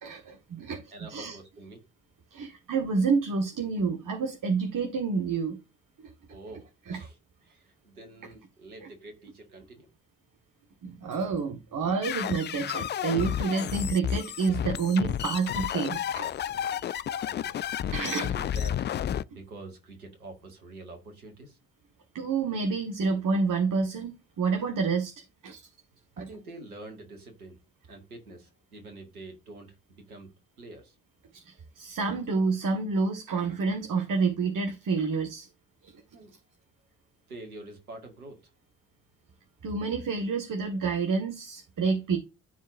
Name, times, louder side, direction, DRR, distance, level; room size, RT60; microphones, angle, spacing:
voice 1, 0.0-1.4 2.3-5.6 6.0-6.1 6.9-7.0 10.8-16.3 17.1-17.2 17.9-18.3 22.1-25.1 25.4-25.6 31.3-35.5 35.8-35.9 39.6-42.2, right 4 dB, 45° right, 1.5 m, -29 dB
voice 2, 0.9-1.8 6.3-9.9 10.9-11.0 17.0-19.0 19.3-21.6 26.1-27.6 27.9-30.3 30.6-30.9 36.1-36.3 37.3-38.5 39.6-39.8, right 2 dB, 90° right, 1.5 m, -46 dB
sound 1, 12.0-19.2, left 10 dB, 25° left, 0.3 m, -31 dB
13.0 x 4.6 x 2.6 m
figure-of-eight pair, 45°, 43 cm